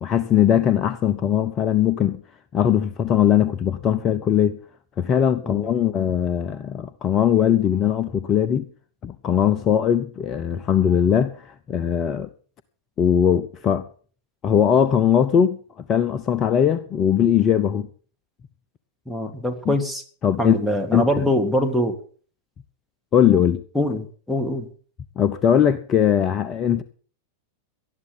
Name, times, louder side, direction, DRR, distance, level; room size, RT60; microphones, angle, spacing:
voice 1, 0.0-2.2 2.5-4.6 5.0-8.7 9.0-12.3 13.0-13.9 14.4-15.6 15.9-17.9 19.7-19.8 20.2-20.6 20.9-21.2 23.1-23.6 25.2-26.8, left 9 dB, 30° left, 0.9 m, -20 dB
voice 2, 19.1-20.0 20.4-22.0 23.7-24.7, left 1 dB, 5° left, 2.8 m, -23 dB
18.5 x 13.0 x 3.9 m
figure-of-eight pair, 90°, 0 cm